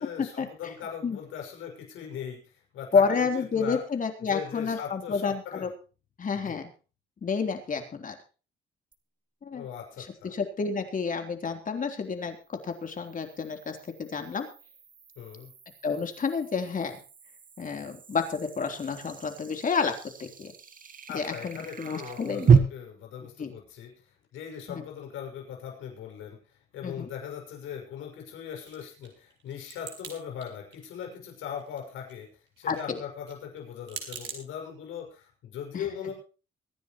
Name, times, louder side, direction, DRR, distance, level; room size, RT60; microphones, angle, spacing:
voice 1, 0.0-2.4 2.7-3.8 4.3-5.7 6.3-6.6 9.5-10.3 15.2-15.5 21.1-23.9 24.3-26.4 26.7-32.3 32.6-36.1, left 8 dB, 90° left, 2 dB, 6.1 m, -39 dB
voice 2, 2.9-5.7 6.2-6.7 7.2-8.2 9.4-9.7 10.0-14.5 15.8-17.0 17.6-19.9 20.2-20.5 21.1-22.6 23.4-23.5 24.7-24.8 26.8-27.1 32.7-33.0 35.7-35.9, left 5 dB, 40° left, 5 dB, 3.4 m, -30 dB
sound 1, 8.9-9.0 12.4-22.6, right 6 dB, 45° right, 1.9 m, -31 dB
sound 2, 28.6-30.2 30.4-31.1 31.4-34.4, right 6 dB, 65° right, 5.0 m, -42 dB
23.5 x 10.5 x 3.0 m, 0.34 s
cardioid pair, 90°, 20 cm